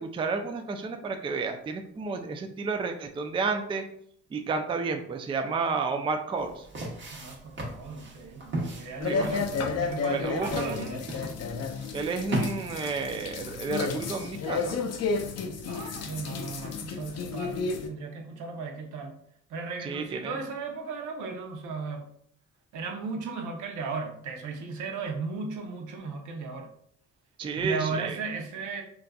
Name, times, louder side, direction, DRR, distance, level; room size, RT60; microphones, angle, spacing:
voice 1, 0.0-3.8 4.3-6.7 9.0-9.5 10.1-10.9 11.9-14.8 19.8-20.4 27.4-28.2, right 4 dB, 20° right, 5 dB, 0.3 m, -31 dB
sound 1, 6.4-12.5, right 1 dB, 40° right, 0.9 m, -36 dB
voice 2, 7.1-11.0 15.7-19.2 19.5-22.1 22.7-26.7 27.5-28.8, right 4 dB, 75° right, 3 dB, 0.7 m, -36 dB
sound 2, 9.0-17.9, left 4 dB, 55° left, 0.5 m, -32 dB
3.9 x 2.4 x 2.2 m, 0.67 s
cardioid pair, 90°, 30 cm